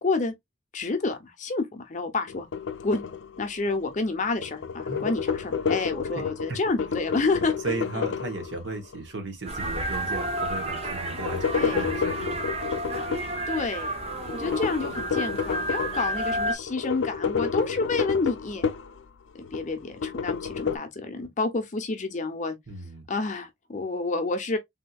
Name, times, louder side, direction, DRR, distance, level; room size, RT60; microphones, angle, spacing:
voice 1, 0.0-0.3 0.7-2.5 2.8-3.0 3.4-7.5 7.9-8.0 11.4-11.9 13.5-13.9 14.3-18.7 19.4-22.6 23.1-24.6, left 3 dB, 40° left, 0.7 m, -29 dB
sound 1, 2.3-3.9 4.2-9.0 10.8-13.4 14.2-16.2 16.6-19.0 19.4-20.8, left 6 dB, 90° left, 0.4 m, -30 dB
voice 2, 6.1-6.6 7.6-12.5 22.7-23.0, right 3 dB, 75° right, 1.1 m, -36 dB
sound 2, 9.4-16.5, right 1 dB, 35° right, 0.8 m, -31 dB
3.5 x 2.7 x 2.3 m
head